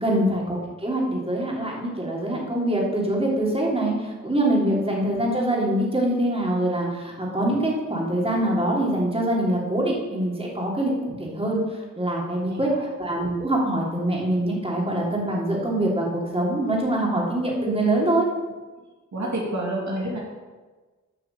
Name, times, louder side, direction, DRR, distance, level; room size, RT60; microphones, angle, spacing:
voice 1, 0.0-12.7 13.0-18.3, right 1 dB, 20° right, -3 dB, 3.3 m, -24 dB
voice 2, 12.5-12.9 19.1-20.2, right 1 dB, 60° right, -3 dB, 2.5 m, -29 dB
9.1 x 5.7 x 7.2 m, 1.3 s
cardioid pair, 40°, 32 cm